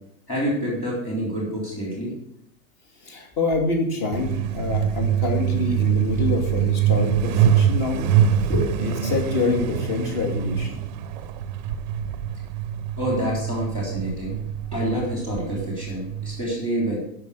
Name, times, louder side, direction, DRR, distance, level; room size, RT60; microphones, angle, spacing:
voice 1, 0.3-2.1 8.5-8.7 13.0-14.4 14.7-17.0, equal, 15° left, -3 dB, 3.4 m, -27 dB
voice 2, 3.0-8.1 8.8-10.8, left 3 dB, 40° left, 1 dB, 2.7 m, -26 dB
Truck, 4.1-16.4, right 9 dB, 35° right, 0.5 m, -24 dB
12.0 x 5.8 x 6.9 m, 0.74 s
supercardioid pair, 180°, 41 cm